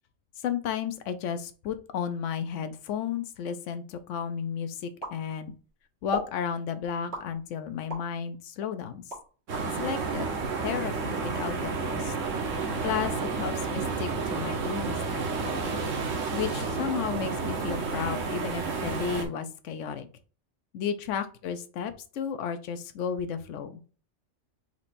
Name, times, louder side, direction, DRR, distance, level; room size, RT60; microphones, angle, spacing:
voice 1, 0.4-5.5 6.0-9.0 9.6-10.3 10.6-12.1 12.8-15.7 16.3-20.1 20.7-23.8, left 7 dB, 75° left, 10 dB, 1.0 m, -33 dB
sound 1, 5.0-5.7 6.1-6.4 7.1-8.1 8.6-9.7, left 1 dB, 55° right, 1.9 m, -36 dB
sound 2, 9.5-19.3, right 4 dB, 80° right, 1.4 m, -31 dB
4.5 x 4.3 x 2.5 m, 0.37 s
omnidirectional pair, 1.3 m